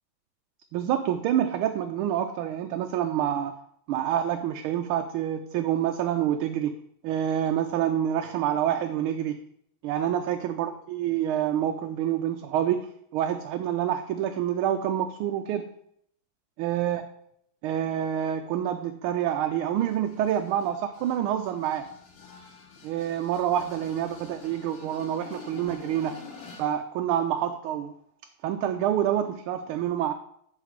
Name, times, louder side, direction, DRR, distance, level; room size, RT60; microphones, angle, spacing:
voice 1, 0.7-3.6 3.9-6.8 7.0-9.4 9.8-15.7 16.6-17.0 17.6-21.9 22.8-26.2 26.6-27.9 28.4-30.1, right 10 dB, 90° right, 6 dB, 1.4 m, -27 dB
sound 1, 19.8-26.8, left 4 dB, 65° left, 2.0 m, -47 dB
10.5 x 3.9 x 5.1 m, 0.70 s
omnidirectional pair, 2.3 m